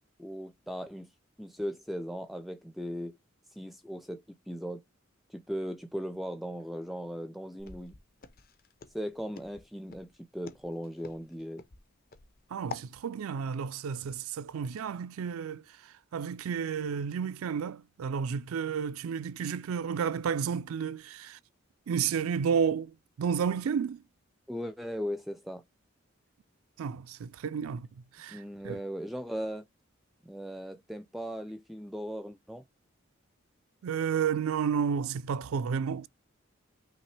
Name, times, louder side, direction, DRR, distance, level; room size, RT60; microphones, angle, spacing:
voice 1, 0.2-1.1 1.4-3.2 3.5-4.8 5.3-7.9 8.9-11.6 24.5-25.6 28.3-29.7 30.2-32.6, equal, ahead, 0.4 m, -38 dB
Walk footsteps, 7.6-12.9, left 5 dB, 45° left, 0.6 m, -47 dB
voice 2, 12.5-21.4 21.9-24.0 26.8-27.9 28.1-28.8 33.8-36.1, right 7 dB, 85° right, 0.4 m, -31 dB
5.6 x 2.9 x 3.2 m
head